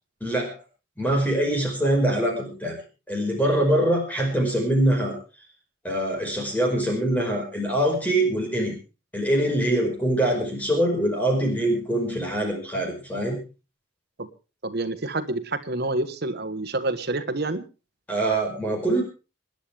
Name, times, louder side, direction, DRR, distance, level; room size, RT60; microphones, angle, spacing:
voice 1, 0.2-0.5 1.0-2.8 3.1-5.2 5.8-8.7 9.1-13.4 18.1-19.0, right 1 dB, 10° left, 1 dB, 5.3 m, -23 dB
voice 2, 14.6-17.6, right 2 dB, 55° right, 9 dB, 1.5 m, -28 dB
27.5 x 10.5 x 3.5 m, 0.32 s
head